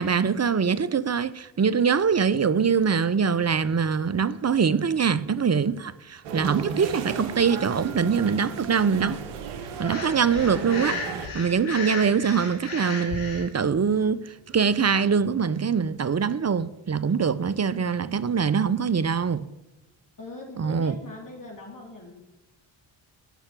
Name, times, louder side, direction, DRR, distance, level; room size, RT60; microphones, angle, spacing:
voice 1, 0.0-9.2 9.8-11.0 11.3-19.5 20.6-20.9, right 6 dB, 30° right, 0.8 m, -23 dB
sound 1, 6.2-11.3, right 6 dB, 85° right, 1.4 m, -34 dB
Breathing, 9.8-13.5, left 4 dB, 70° left, 3.8 m, -35 dB
voice 2, 20.2-22.1, left 2 dB, 40° left, 3.6 m, -41 dB
14.0 x 5.8 x 9.1 m
hypercardioid pair, 45°, 50 cm